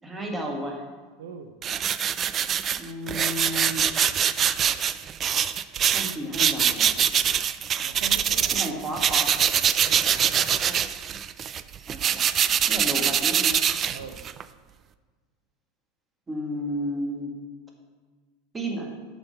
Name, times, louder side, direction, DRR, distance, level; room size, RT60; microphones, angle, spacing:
voice 1, 0.0-0.8 2.8-3.9 5.9-7.0 8.5-9.3 9.9-10.0 10.6-10.8 11.9-12.3 12.7-13.6 16.3-17.3 18.5-18.9, equal, 20° right, 1 dB, 1.7 m, -32 dB
voice 2, 1.2-1.5 7.8-8.8 9.1-9.2 9.8-10.5 13.9-14.2, right 6 dB, 80° right, 7 dB, 0.6 m, -42 dB
sound 1, 1.6-8.7 9.0-14.4, right 9 dB, 35° right, 0.3 m, -24 dB
6.7 x 5.7 x 5.6 m, 1.4 s
hypercardioid pair, 100°, 0 cm